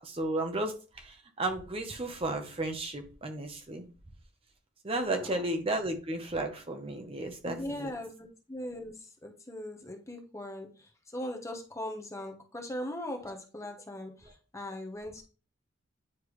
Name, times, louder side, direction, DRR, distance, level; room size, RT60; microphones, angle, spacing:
voice 1, 0.0-3.9 4.8-7.9, right 2 dB, 30° right, 5 dB, 0.7 m, -33 dB
voice 2, 5.0-5.4 7.4-15.2, left 1 dB, 15° left, 3 dB, 0.8 m, -40 dB
9.5 x 3.3 x 3.1 m, 0.36 s
head